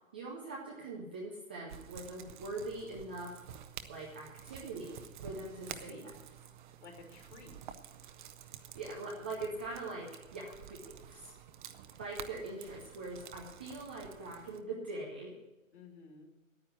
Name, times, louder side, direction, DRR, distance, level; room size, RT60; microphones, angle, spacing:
voice 1, 0.1-3.4 3.9-6.1 8.7-11.3 12.0-15.3, right 2 dB, 10° right, -3 dB, 0.4 m, -42 dB
sound 1, 1.7-14.6, right 9 dB, 35° right, 0.9 m, -50 dB
voice 2, 5.6-6.2 6.8-7.6 15.7-16.3, left 4 dB, 55° left, 2 dB, 3.3 m, -54 dB
9.8 x 9.6 x 9.2 m, 1.0 s
figure-of-eight pair, 130°, 40 cm